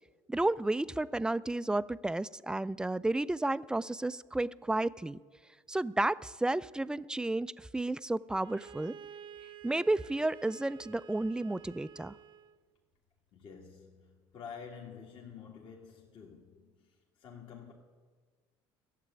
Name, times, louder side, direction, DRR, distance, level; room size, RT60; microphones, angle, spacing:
voice 1, 0.3-5.2 5.7-9.0 9.6-12.2, right 2 dB, 5° right, 0.3 m, -32 dB
Bowed string instrument, 8.4-12.6, right 8 dB, 50° right, 0.9 m, -51 dB
voice 2, 13.3-17.7, left 6 dB, 50° left, 1.8 m, -49 dB
14.5 x 7.5 x 9.7 m
supercardioid pair, 90°, 11 cm